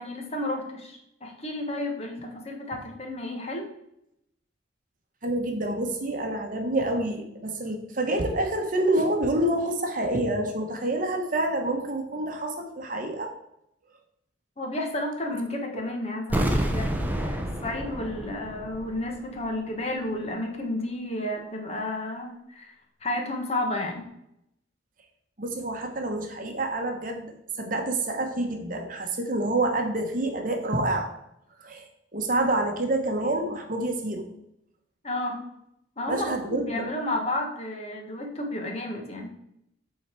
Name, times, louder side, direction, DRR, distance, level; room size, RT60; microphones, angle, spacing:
voice 1, 0.0-3.7 14.6-22.8 23.0-24.0 35.0-35.4 36.0-39.3, left 1 dB, 35° left, 2 dB, 1.2 m, -32 dB
voice 2, 5.2-13.3 25.4-27.3 27.6-31.1 31.6-34.3 36.1-36.9, right 1 dB, 45° right, 3 dB, 1.0 m, -27 dB
sound 1, 16.3-19.2 19.4-19.5, equal, 10° right, 0.7 m, -28 dB
8.6 x 3.9 x 4.5 m, 0.80 s
head